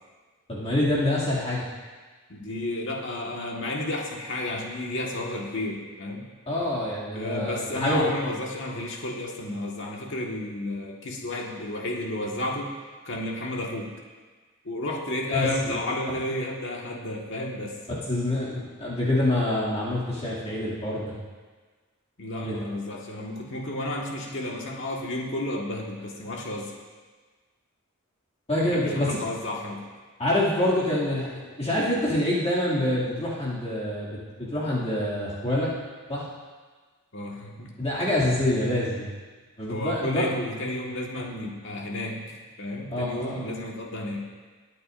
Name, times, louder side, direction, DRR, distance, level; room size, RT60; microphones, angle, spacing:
voice 1, 0.5-1.6 6.5-8.0 15.3-15.8 18.1-21.1 22.4-22.6 28.5-29.2 30.2-35.7 36.1-36.3 37.8-39.1 39.6-40.2 42.9-43.4, left 1 dB, 30° left, -8 dB, 2.4 m, -26 dB
voice 2, 2.3-6.2 7.1-12.7 13.0-13.9 14.6-17.7 22.2-26.7 28.6-29.8 37.1-37.7 39.7-42.2 42.6-44.2, left 1 dB, 55° left, -1 dB, 1.6 m, -32 dB
22.0 x 8.6 x 2.6 m, 1.4 s
head